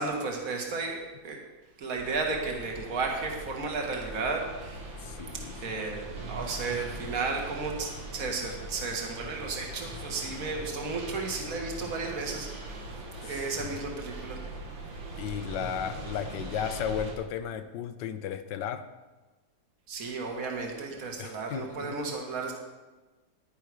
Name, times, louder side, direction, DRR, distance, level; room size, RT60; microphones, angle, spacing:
voice 1, 0.0-1.4 1.8-5.1 5.6-14.5 19.9-22.5, right 4 dB, 50° right, 1 dB, 2.0 m, -34 dB
sound 1, 1.9-17.1, right 1 dB, 85° right, 2.5 m, -42 dB
sound 2, 2.1-17.1, right 3 dB, 90° left, 3.6 m, -48 dB
voice 2, 5.0-5.5 13.6-13.8 15.1-18.9 21.2-21.9, left 8 dB, 75° left, 11 dB, 1.3 m, -34 dB
10.5 x 10.5 x 4.8 m, 1.2 s
omnidirectional pair, 2.1 m